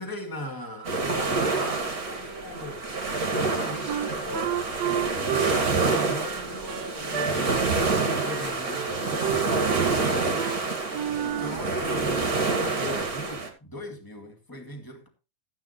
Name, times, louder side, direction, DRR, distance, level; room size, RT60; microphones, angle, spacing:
voice 1, 0.0-2.8 3.3-4.7 5.1-10.5 11.2-15.1, left 1 dB, 10° left, 1.3 m, -39 dB
sound 1, 0.8-13.5, right 3 dB, 30° right, 2.2 m, -27 dB
Wind instrument woodwind instrument, 3.9-7.4 7.7-8.0 8.3-9.0 9.2-10.0 10.4-10.6 10.9-11.6, right 11 dB, 65° right, 1.7 m, -31 dB
13.5 x 9.6 x 3.2 m
omnidirectional pair, 3.9 m